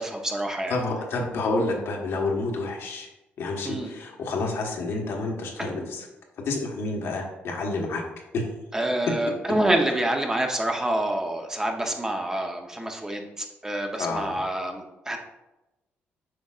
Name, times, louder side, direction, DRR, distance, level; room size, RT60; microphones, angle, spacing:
voice 1, 0.0-0.8 3.6-3.9 5.6-5.9 8.7-15.2, right 1 dB, 15° right, 3 dB, 0.8 m, -27 dB
voice 2, 0.7-3.1 3.4-6.1 6.4-8.1 8.3-8.6 9.1-9.2 14.0-14.4, left 3 dB, 75° left, 0 dB, 1.3 m, -29 dB
8.0 x 5.2 x 2.4 m, 0.98 s
cardioid pair, 105°, 4 cm